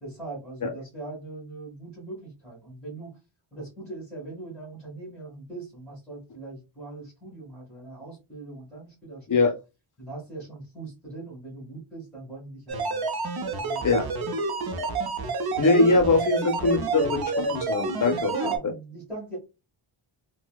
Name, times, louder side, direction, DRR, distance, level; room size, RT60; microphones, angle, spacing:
voice 1, 0.0-3.2 3.5-9.6 10.0-13.0 13.6-14.3 15.8-16.1 18.3-19.4, right 3 dB, ahead, -6 dB, 1.6 m, -40 dB
sound 1, 12.7-18.6, right 3 dB, 50° right, 0.6 m, -29 dB
voice 2, 15.6-18.5, left 3 dB, 40° left, 6 dB, 0.6 m, -22 dB
4.1 x 2.2 x 2.3 m, 0.27 s
wide cardioid pair, 175°, 48 cm